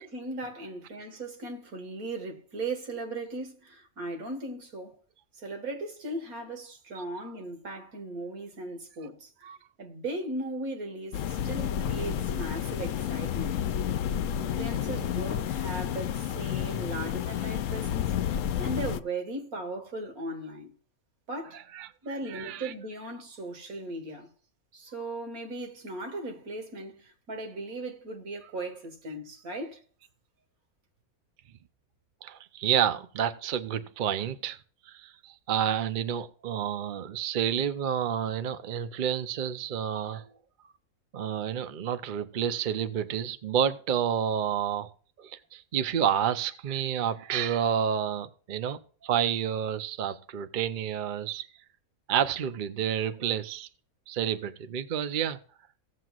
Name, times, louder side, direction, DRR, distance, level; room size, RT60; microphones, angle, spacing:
voice 1, 0.0-5.0 5.3-9.5 9.8-13.6 14.4-20.7 21.3-21.6 22.0-24.3 24.7-29.8, right 2 dB, 80° right, 2.1 m, -37 dB
voice 2, 6.9-7.3 9.4-9.6 21.4-22.7 28.4-28.5 32.2-34.6 34.9-40.3 41.1-44.9 45.2-51.4 52.1-53.7 54.1-55.4, right 9 dB, 50° right, 0.6 m, -30 dB
sound 1, 11.1-19.0, left 10 dB, 70° left, 0.9 m, -30 dB
16.0 x 7.7 x 2.4 m
omnidirectional pair, 1.5 m